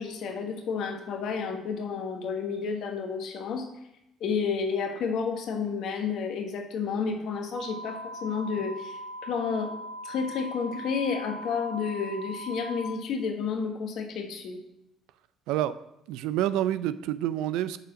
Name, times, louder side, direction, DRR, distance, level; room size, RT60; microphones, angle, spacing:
voice 1, 0.0-3.7 4.2-9.7 10.0-14.6, left 5 dB, 65° left, 4 dB, 1.3 m, -31 dB
sound 1, 7.5-12.9, equal, 10° right, 1.1 m, -40 dB
voice 2, 15.5-15.8 16.1-17.8, right 12 dB, 80° right, 15 dB, 0.3 m, -28 dB
6.7 x 4.0 x 6.2 m, 0.86 s
supercardioid pair, 65°, 0 cm